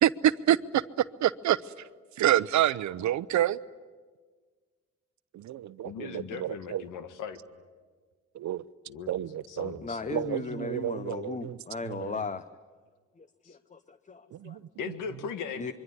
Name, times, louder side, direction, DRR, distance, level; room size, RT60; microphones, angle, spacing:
voice 1, 0.0-0.8 1.2-1.6 2.2-3.6 5.3-6.8 8.3-8.6 9.1-9.8 10.1-11.6 11.8-12.2 14.3-14.6, right 12 dB, 70° right, 0.8 m, -27 dB
voice 2, 5.8-7.4 8.9-9.2 9.5-10.3 13.5-13.6 14.8-15.7, left 6 dB, 90° left, 1.8 m, -38 dB
voice 3, 9.8-12.5 13.2-14.6 15.6-15.7, left 5 dB, 25° left, 0.8 m, -37 dB
25.5 x 24.0 x 9.6 m
cardioid pair, 90°, 30 cm